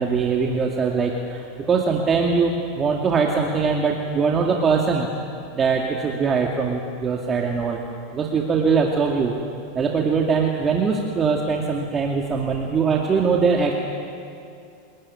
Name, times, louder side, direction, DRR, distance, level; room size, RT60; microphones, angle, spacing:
voice 1, 0.0-5.1 5.5-7.8 8.1-9.4 9.7-13.8, right 5 dB, 25° right, 0 dB, 2.4 m, -22 dB
26.0 x 20.5 x 9.9 m, 2.5 s
supercardioid pair, 125°, 0 cm